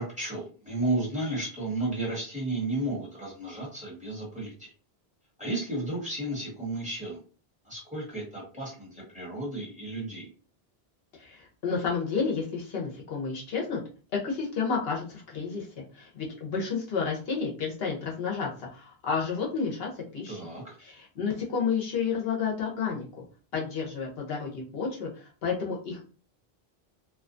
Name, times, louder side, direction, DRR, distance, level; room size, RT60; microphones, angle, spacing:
voice 1, 0.0-4.7 5.4-7.2 7.6-10.3 20.3-20.8, right 2 dB, 5° right, -4 dB, 1.3 m, -33 dB
voice 2, 11.2-13.8 14.2-20.4 20.8-23.2 23.5-26.1, left 5 dB, 70° left, -1 dB, 1.0 m, -31 dB
2.7 x 2.3 x 2.5 m, 0.37 s
omnidirectional pair, 1.1 m